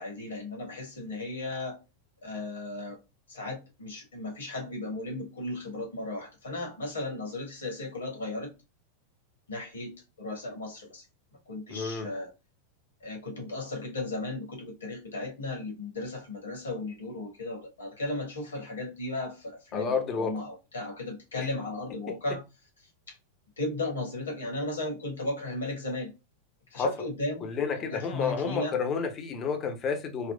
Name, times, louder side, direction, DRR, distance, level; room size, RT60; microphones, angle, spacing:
voice 1, 0.0-1.8 2.2-3.0 3.3-8.5 9.5-11.0 11.5-12.3 13.0-22.4 23.1-23.2 23.6-26.1 26.7-28.8, left 2 dB, 70° left, 1.3 m, -35 dB
voice 2, 11.7-12.1 19.7-20.4 21.4-21.5 26.7-26.9 27.4-30.3, left 6 dB, 30° left, 0.6 m, -30 dB
4.2 x 2.1 x 2.2 m
figure-of-eight pair, 90°, 0 cm